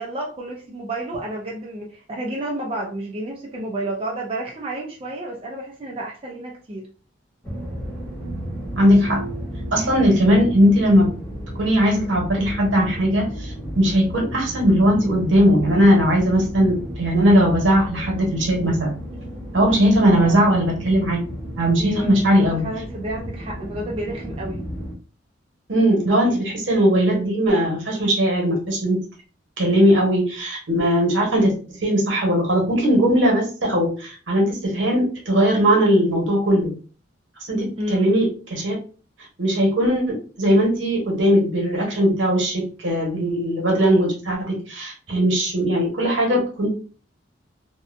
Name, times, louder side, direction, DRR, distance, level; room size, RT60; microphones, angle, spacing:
voice 1, 0.0-6.8 20.1-20.5 21.8-24.6 37.8-38.1, right 1 dB, 30° right, -2 dB, 0.4 m, -30 dB
sound 1, 7.4-24.9, equal, 10° left, 0.7 m, -33 dB
voice 2, 8.8-9.2 9.7-11.1 11.6-18.9 19.5-21.2 21.6-22.7 25.7-29.0 29.6-36.7 37.4-38.8 39.4-46.7, equal, 80° right, -1 dB, 1.0 m, -19 dB
2.7 x 2.1 x 2.4 m, 0.37 s
head